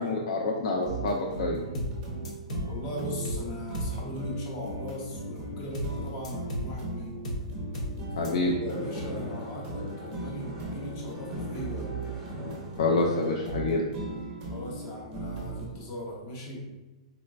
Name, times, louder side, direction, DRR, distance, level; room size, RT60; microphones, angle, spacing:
voice 1, 0.0-1.6 8.2-8.5 12.8-13.9, left 3 dB, 55° left, 0 dB, 0.4 m, -27 dB
sound 1, 0.7-15.7, right 2 dB, 25° right, 0.5 m, -38 dB
sound 2, 1.7-2.0 2.2-2.7 3.2-3.5 3.7-4.0 5.7-6.0 6.2-6.7 7.2-7.5 7.7-8.0 8.2-8.3, equal, 90° left, 0.7 m, -33 dB
voice 2, 2.7-7.2 8.2-11.9 14.5-16.7, equal, 30° left, -2 dB, 0.8 m, -38 dB
sound 3, 8.6-13.6, left 1 dB, 5° right, 0.9 m, -42 dB
3.9 x 2.2 x 2.3 m, 1.1 s
hypercardioid pair, 170°, 4 cm